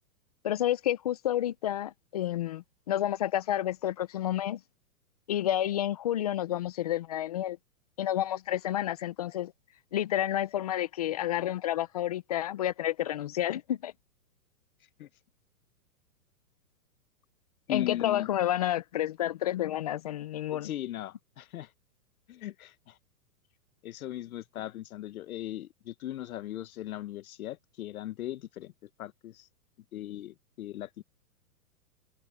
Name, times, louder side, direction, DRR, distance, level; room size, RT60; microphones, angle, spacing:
voice 1, 0.4-4.6 5.3-7.6 8.0-9.5 9.9-13.9 17.7-20.7, left 12 dB, 25° left, 0.4 m, -30 dB
voice 2, 17.7-18.3 20.5-21.7 22.3-23.0 23.8-28.7 29.0-29.5 29.9-31.0, left 13 dB, 60° left, 1.2 m, -38 dB
hypercardioid pair, 145°, 47 cm